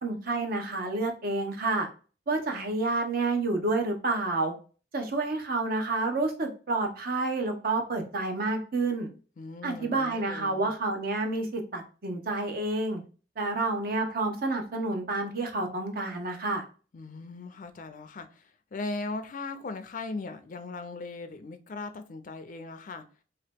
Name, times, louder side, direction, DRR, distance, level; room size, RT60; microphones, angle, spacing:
voice 1, 0.0-1.9 2.3-4.5 4.9-9.1 9.6-13.0 13.4-16.7, right 2 dB, 55° right, 0.8 m, -29 dB
voice 2, 9.4-10.8 16.9-23.0, left 3 dB, 45° left, 0.4 m, -39 dB
2.9 x 2.8 x 3.4 m
head